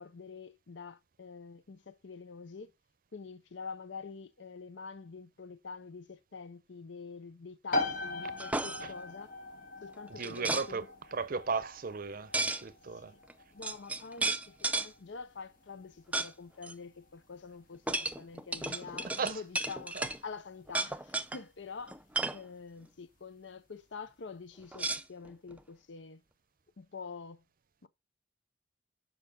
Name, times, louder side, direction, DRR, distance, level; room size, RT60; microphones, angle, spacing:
voice 1, 0.0-2.7 3.1-9.3 9.8-10.9 12.9-13.2 13.5-22.0 22.3-26.2 26.8-27.4 27.8-27.9, left 5 dB, 75° left, 0.6 m, -46 dB
sound 1, 7.7-22.2, left 2 dB, 50° left, 1.7 m, -42 dB
sound 2, 8.4-8.8 10.2-10.7 12.3-12.6 13.3-13.4 13.6-14.9 16.1-16.3 16.6-16.7 17.9-20.2 20.7-21.4 21.9-22.4 24.7-25.6, right 2 dB, 10° right, 0.5 m, -33 dB
voice 2, 10.1-13.1 18.6-18.8 19.2-19.4 19.9-20.1, right 4 dB, 50° right, 0.6 m, -36 dB
6.8 x 5.5 x 5.2 m
head